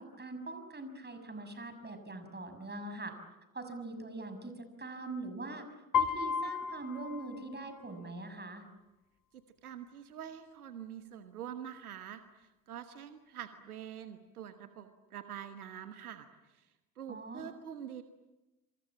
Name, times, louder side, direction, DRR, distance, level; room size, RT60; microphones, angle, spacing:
voice 1, 0.0-3.1 3.5-5.7 6.0-8.6 17.1-17.4, right 2 dB, 25° right, 8 dB, 6.7 m, -42 dB
Piano, 5.9-8.0, left 7 dB, 50° left, 1.6 m, -34 dB
voice 2, 9.3-18.0, right 9 dB, 85° right, 9 dB, 1.3 m, -46 dB
27.0 x 25.5 x 7.4 m, 1.0 s
figure-of-eight pair, 50°, 43 cm